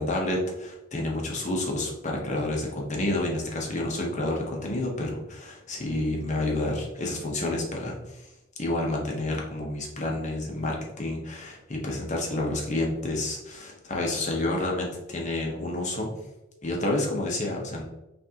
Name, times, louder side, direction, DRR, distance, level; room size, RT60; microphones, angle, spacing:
voice 1, 0.0-8.3 8.6-16.1 16.6-17.8, left 1 dB, 35° left, -1 dB, 0.8 m, -29 dB
5.8 x 2.6 x 2.8 m, 0.95 s
head